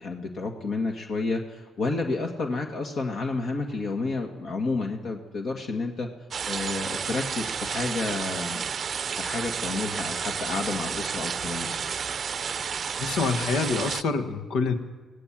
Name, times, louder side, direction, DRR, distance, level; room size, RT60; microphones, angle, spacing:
voice 1, 0.0-6.1 6.5-8.6 9.1-11.7, left 3 dB, 60° left, 2 dB, 2.0 m, -30 dB
sound 1, 6.3-14.0, right 6 dB, 50° right, 0.6 m, -31 dB
voice 2, 13.0-14.7, left 4 dB, 80° left, 7 dB, 1.7 m, -26 dB
23.0 x 17.0 x 7.6 m, 1.3 s
cardioid pair, 90°, 0 cm